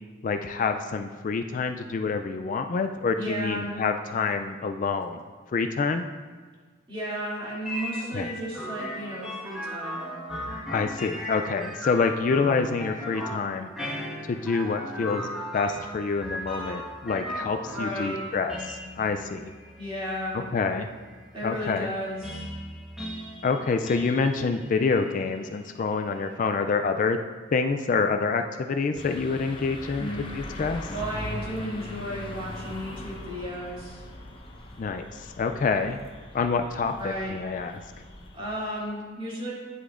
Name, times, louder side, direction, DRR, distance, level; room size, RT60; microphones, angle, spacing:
voice 1, 0.2-5.2 5.5-6.1 8.1-8.3 10.7-13.7 14.3-15.3 15.5-19.5 20.5-20.9 21.4-21.9 23.4-27.2 27.5-30.1 30.4-30.9 34.8-36.0 36.3-37.8, left 4 dB, 45° left, 6 dB, 0.3 m, -27 dB
voice 2, 3.1-3.7 6.9-10.0 17.7-18.2 19.8-20.5 21.3-22.5 30.0-30.2 30.9-34.0 37.0-37.4 38.3-39.5, equal, 30° right, -7 dB, 2.5 m, -33 dB
sound 1, 7.6-26.3, left 1 dB, 5° right, 1.4 m, -37 dB
sound 2, 28.9-38.4, left 1 dB, 25° left, 0.8 m, -40 dB
9.6 x 8.2 x 2.5 m, 1.4 s
head